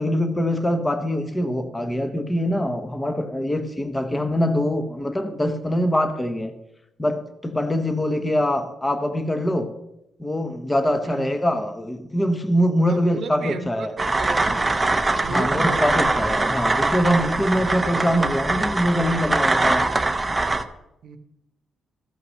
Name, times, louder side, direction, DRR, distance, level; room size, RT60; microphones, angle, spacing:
voice 1, 0.0-6.5 7.0-9.7 10.2-13.9 15.3-19.9, equal, 10° left, 0.9 m, -23 dB
voice 2, 12.9-14.7 15.2-15.9 21.0-21.2, right 4 dB, 55° right, 1.0 m, -34 dB
sound 1, 14.0-20.6, right 2 dB, 15° right, 0.6 m, -22 dB
14.0 x 5.8 x 6.3 m
cardioid pair, 150°, 0 cm